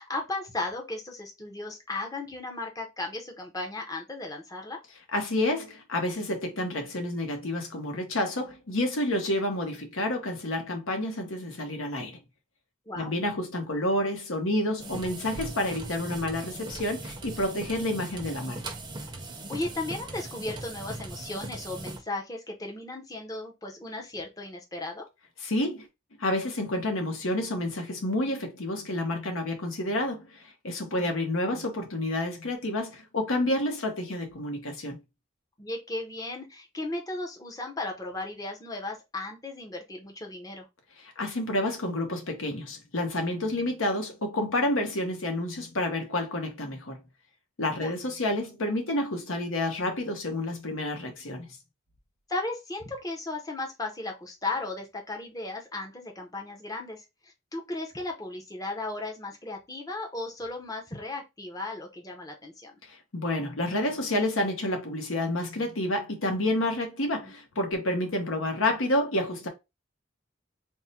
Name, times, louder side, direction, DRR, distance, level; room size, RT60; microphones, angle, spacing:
voice 1, 0.0-4.8 12.9-13.1 19.5-25.1 30.8-31.1 35.6-40.7 47.6-47.9 52.3-62.7 67.2-67.3, left 2 dB, 20° left, 0.7 m, -36 dB
voice 2, 5.1-12.2 13.0-18.6 25.4-25.9 26.2-35.0 41.0-47.0 47.6-51.6 62.8-69.5, left 1 dB, 85° left, 1.0 m, -29 dB
sound 1, 14.8-22.0, right 2 dB, 20° right, 0.6 m, -39 dB
3.6 x 2.1 x 4.1 m
head